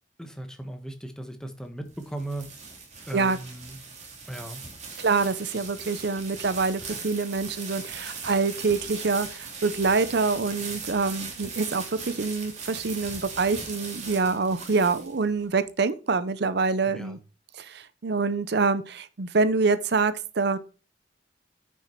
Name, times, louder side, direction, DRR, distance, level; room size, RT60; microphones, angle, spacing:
voice 1, 0.2-2.5 3.1-3.8 4.3-4.6 16.9-17.2, right 1 dB, 5° left, 1.3 m, -37 dB
sound 1, 1.6-15.5, right 4 dB, 40° right, 3.2 m, -39 dB
voice 2, 5.0-17.2 17.6-20.6, right 4 dB, 65° right, 0.6 m, -26 dB
10.0 x 5.9 x 4.5 m
head